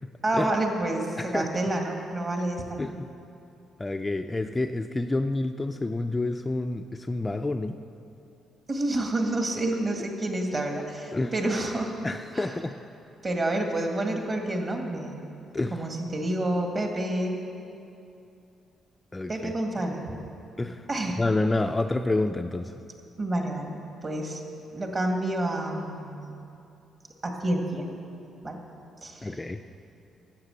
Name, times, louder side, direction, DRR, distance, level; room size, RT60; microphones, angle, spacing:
voice 1, 0.2-2.8 8.7-11.9 12.3-12.5 13.2-15.2 15.7-17.4 19.3-20.0 20.9-21.2 23.2-23.7 24.0-24.4 24.7-26.3 27.2-27.8 28.4-28.6 29.0-29.3, right 1 dB, 35° right, 2 dB, 1.9 m, -28 dB
voice 2, 1.2-1.5 2.8-3.1 3.8-7.8 11.1-11.3 12.0-12.8 15.5-15.8 19.1-19.6 20.6-20.9 21.2-22.7 29.2-29.6, left 2 dB, 20° left, 6 dB, 0.4 m, -28 dB
11.5 x 7.5 x 7.7 m, 2.7 s
cardioid pair, 90°, 0 cm